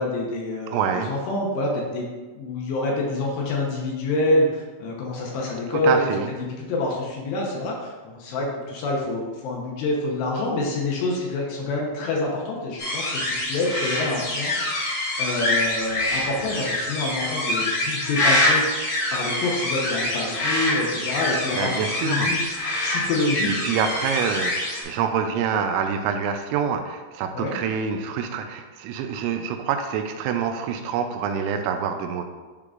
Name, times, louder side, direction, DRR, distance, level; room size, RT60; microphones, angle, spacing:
voice 1, 0.0-2.1 2.4-18.8 19.1-22.4 22.8-23.6 27.3-27.5, left 2 dB, 75° left, -2 dB, 2.8 m, -27 dB
voice 2, 0.7-1.1 5.7-6.3 21.6-22.3 23.4-32.3, right 7 dB, 85° right, 5 dB, 2.8 m, -26 dB
sound 1, 12.8-24.8, left 1 dB, 50° left, 1.5 m, -25 dB
10.5 x 3.8 x 2.4 m, 1.3 s
omnidirectional pair, 5.3 m